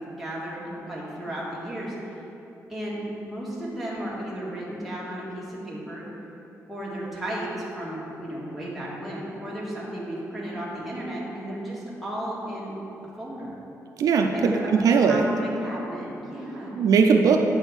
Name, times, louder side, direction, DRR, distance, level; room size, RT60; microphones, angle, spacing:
voice 1, 0.0-2.0 2.7-6.0 6.7-12.7 13.2-13.5 14.3-16.7, right 1 dB, ahead, -8 dB, 1.8 m, -34 dB
voice 2, 14.0-15.2 16.7-17.4, right 5 dB, 75° right, 3 dB, 0.5 m, -19 dB
8.7 x 4.5 x 6.3 m, 3.0 s
wide cardioid pair, 160°, 6 cm